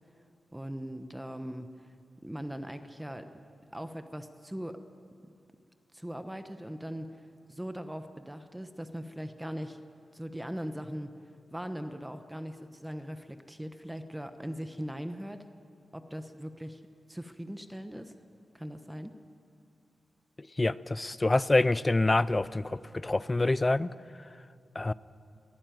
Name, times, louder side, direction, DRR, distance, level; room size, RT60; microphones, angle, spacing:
voice 1, 0.5-1.7 2.2-3.3 3.7-4.8 5.9-7.2 7.5-9.8 10.1-11.1 11.5-15.4 15.9-16.8 17.1-18.1 18.5-19.1, equal, 10° right, 1.0 m, -40 dB
voice 2, 20.6-23.9 24.8-24.9, left 2 dB, 25° left, 0.5 m, -26 dB
21.5 x 15.0 x 9.2 m
wide cardioid pair, 110°, 0 cm